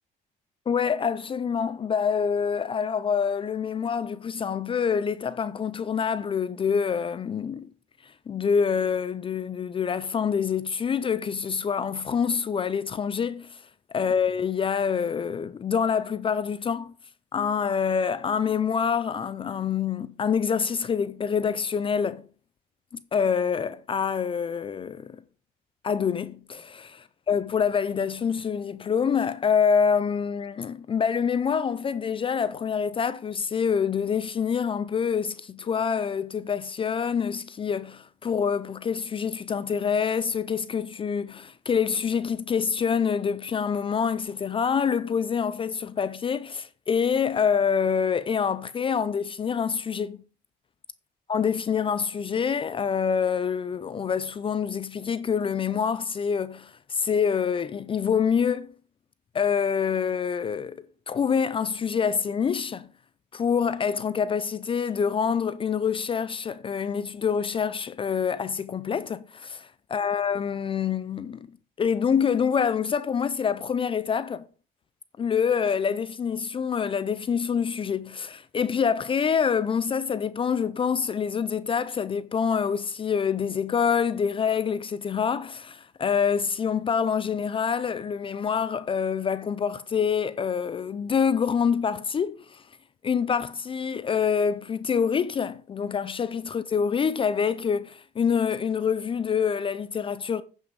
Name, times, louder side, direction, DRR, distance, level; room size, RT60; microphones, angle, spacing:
voice 1, 0.7-7.7 8.0-16.9 17.3-22.3 22.9-25.2 25.8-50.2 51.3-58.7 59.3-62.9 63.3-71.5 71.8-74.4 75.2-92.7 93.0-100.4, left 6 dB, 30° left, 0.5 m, -26 dB
9.2 x 5.5 x 5.1 m
cardioid pair, 110°, 17 cm